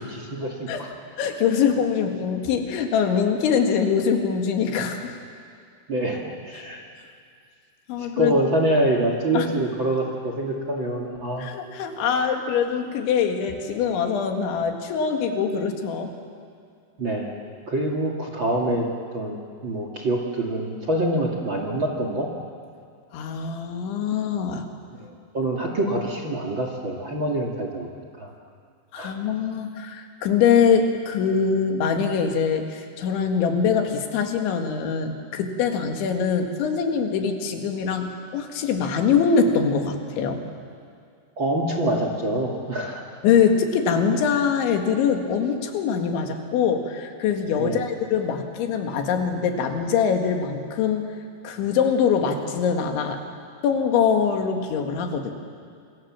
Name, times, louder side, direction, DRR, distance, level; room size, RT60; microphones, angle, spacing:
voice 1, 0.1-0.9 5.9-6.8 8.0-11.5 12.1-12.2 17.0-17.4 17.7-18.9 19.1-22.3 25.0-27.9 28.2-28.3 29.0-29.1 41.4-43.0 47.6-47.8, right 1 dB, 40° right, 1 dB, 2.0 m, -25 dB
voice 2, 1.2-5.2 7.9-8.3 9.3-9.5 11.4-16.1 23.1-24.7 28.9-40.4 43.2-51.1 51.4-53.2 53.6-55.3, left 6 dB, 85° left, 4 dB, 4.3 m, -23 dB
27.0 x 26.0 x 7.5 m, 2.3 s
omnidirectional pair, 5.2 m